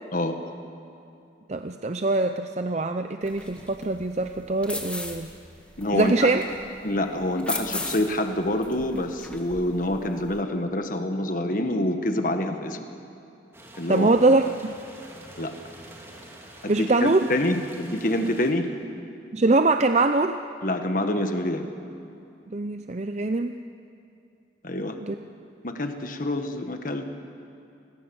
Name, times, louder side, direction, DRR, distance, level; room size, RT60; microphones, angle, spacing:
voice 1, 1.5-5.3 5.9-6.4 13.9-14.5 16.7-17.3 19.3-20.4 22.5-23.5 25.0-25.2, right 2 dB, 35° right, 7 dB, 0.6 m, -23 dB
sound 1, 3.2-10.4, left 2 dB, 5° left, 1.6 m, -38 dB
voice 2, 5.8-6.4 6.8-12.8 13.8-14.1 15.4-15.5 16.6-18.7 20.6-21.7 24.6-25.0 25.6-27.1, left 1 dB, 45° left, 6 dB, 1.6 m, -26 dB
sound 2, 13.5-18.5, right 1 dB, 15° right, 2.7 m, -46 dB
28.0 x 21.0 x 7.1 m, 2.7 s
head